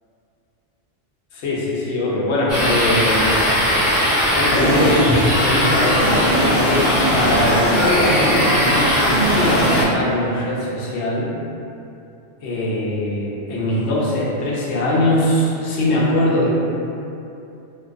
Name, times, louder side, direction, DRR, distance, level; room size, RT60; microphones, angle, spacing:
voice 1, 1.3-3.5 4.3-5.1 5.4-11.3 12.4-16.5, left 1 dB, 65° left, -5 dB, 0.8 m, -21 dB
sound 1, 2.5-9.8, equal, 25° left, 0.3 m, -18 dB
2.6 x 2.2 x 2.4 m, 2.7 s
omnidirectional pair, 1.3 m